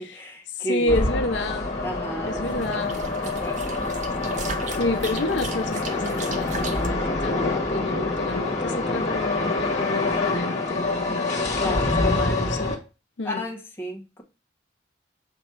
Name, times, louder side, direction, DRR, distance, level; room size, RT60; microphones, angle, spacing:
voice 1, 0.0-0.9 1.8-2.8 3.2-3.8 11.5-12.0 13.2-14.2, equal, 15° left, 1.2 m, -33 dB
voice 2, 0.6-1.7 2.3-3.0 4.8-12.8 13.2-13.4, left 2 dB, 75° left, 0.7 m, -29 dB
sound 1, 0.9-12.8, left 2 dB, 40° left, 1.6 m, -26 dB
sound 2, 2.5-6.9, right 4 dB, 40° right, 0.8 m, -37 dB
6.8 x 3.1 x 4.6 m
head